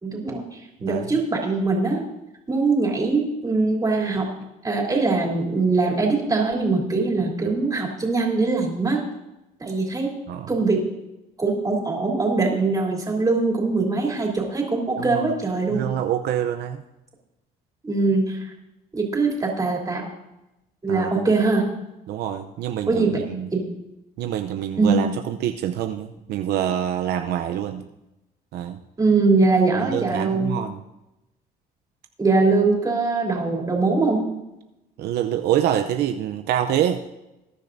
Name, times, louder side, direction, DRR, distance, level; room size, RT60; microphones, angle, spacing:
voice 1, 0.0-2.0 2.5-4.3 4.6-9.0 9.6-10.1 10.5-10.8 11.4-15.8 17.8-18.4 18.9-20.0 20.8-21.7 22.9-23.2 23.5-23.6 24.8-25.0 29.0-30.5 32.2-34.2, right 3 dB, 20° right, -1 dB, 3.3 m, -22 dB
voice 2, 15.7-16.8 20.9-21.3 22.1-23.5 24.2-27.8 28.5-28.8 29.8-30.8 35.0-37.0, right 10 dB, 75° right, 6 dB, 0.7 m, -26 dB
20.5 x 10.5 x 2.7 m, 0.94 s
cardioid pair, 110°, 17 cm